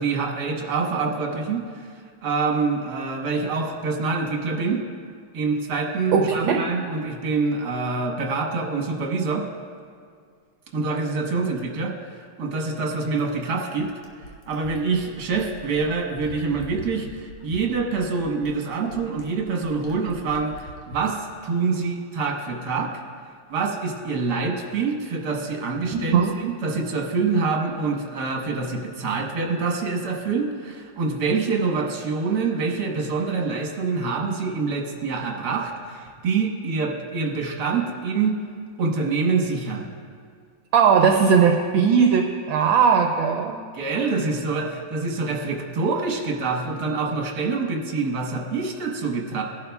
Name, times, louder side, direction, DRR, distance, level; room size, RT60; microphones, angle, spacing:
voice 1, 0.0-2.0 2.2-4.8 5.3-9.5 10.7-11.9 12.4-13.9 14.5-22.9 23.5-38.4 38.8-39.8 43.7-49.4, right 4 dB, 55° right, 1 dB, 1.6 m, -26 dB
voice 2, 6.1-6.6 25.9-26.3 40.7-43.6, right 6 dB, 70° right, 3 dB, 1.4 m, -18 dB
Fill (with liquid), 13.0-21.1 22.5-22.6, equal, 75° left, 2.0 m, -42 dB
19.0 x 11.0 x 2.3 m, 2.1 s
omnidirectional pair, 2.4 m